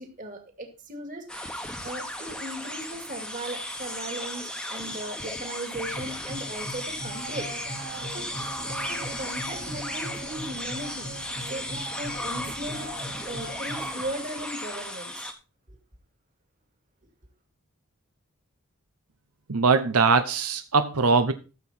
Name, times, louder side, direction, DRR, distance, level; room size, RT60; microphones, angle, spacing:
voice 1, 0.0-7.5 7.8-8.3 8.8-11.1 11.4-12.9 13.3-15.3 15.7-15.8, right 1 dB, 35° right, 2.3 m, -38 dB
sound 1, 1.3-15.3, left 1 dB, 5° left, 1.1 m, -35 dB
sound 2, 5.7-13.9, right 1 dB, 55° right, 2.4 m, -40 dB
voice 2, 19.5-21.3, right 4 dB, 90° right, 0.9 m, -21 dB
14.0 x 7.1 x 4.3 m
head